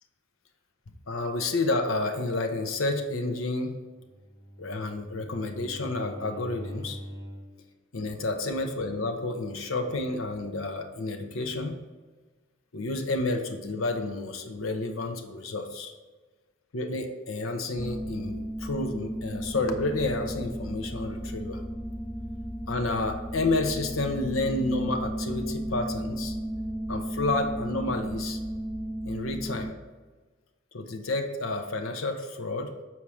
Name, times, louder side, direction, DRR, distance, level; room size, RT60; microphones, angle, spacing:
voice 1, 1.1-3.8 4.6-7.0 7.9-11.8 12.7-15.9 16.7-21.6 22.7-26.3 26.9-28.4 29.0-29.8 30.7-32.7, left 2 dB, 75° left, 5 dB, 0.9 m, -30 dB
Bowed string instrument, 4.0-7.6, equal, 20° right, 2.2 m, -43 dB
sound 1, 17.8-29.7, right 1 dB, 5° left, 0.3 m, -34 dB
7.2 x 4.7 x 4.9 m, 1.3 s
head